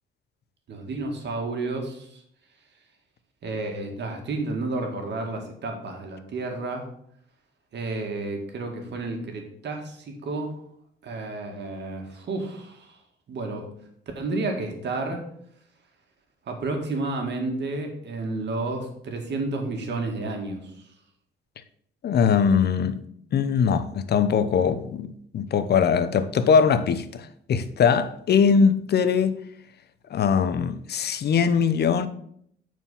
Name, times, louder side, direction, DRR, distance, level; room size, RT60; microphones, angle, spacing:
voice 1, 0.7-2.2 3.4-6.9 7.7-10.6 11.0-13.0 13.3-13.6 14.2-15.2 16.5-20.8, right 2 dB, 60° right, 2.1 m, -31 dB
voice 2, 22.0-23.0 23.3-29.4 30.1-32.1, left 6 dB, 55° left, 0.8 m, -21 dB
9.0 x 4.6 x 5.6 m
cardioid pair, 90°, 20 cm